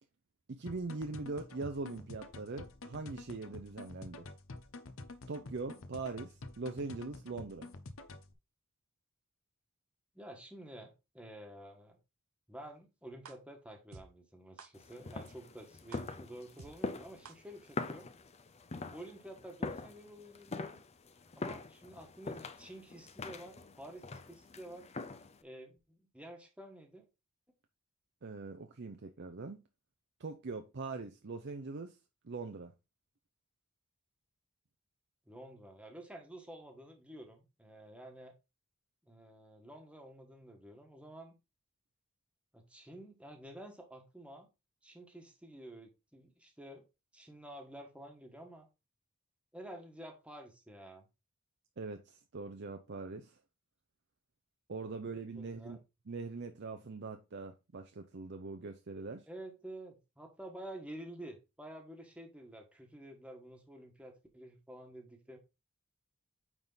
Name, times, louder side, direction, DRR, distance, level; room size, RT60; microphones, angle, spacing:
voice 1, 0.5-4.3 5.3-7.7 28.2-29.6 30.2-32.0 32.2-32.7 51.8-53.4 54.7-55.8 56.1-59.3, right 3 dB, 50° right, 0.6 m, -42 dB
sound 1, 0.7-8.3, left 2 dB, 65° left, 0.8 m, -49 dB
voice 2, 10.1-12.0 12.5-18.1 18.9-20.8 21.3-24.9 25.4-27.0 35.3-38.3 39.1-41.3 42.5-44.5 44.8-46.9 47.1-48.7 49.5-51.1 55.3-55.8 59.3-65.4, right 1 dB, 5° right, 1.4 m, -50 dB
sound 2, 13.2-13.3 13.9-14.0 14.6-14.7 15.2-15.3 15.9-16.0 16.6-16.7 17.2-17.3, right 4 dB, 85° right, 0.9 m, -50 dB
sound 3, 14.7-25.4, left 3 dB, 30° left, 0.5 m, -43 dB
9.0 x 3.7 x 4.0 m
head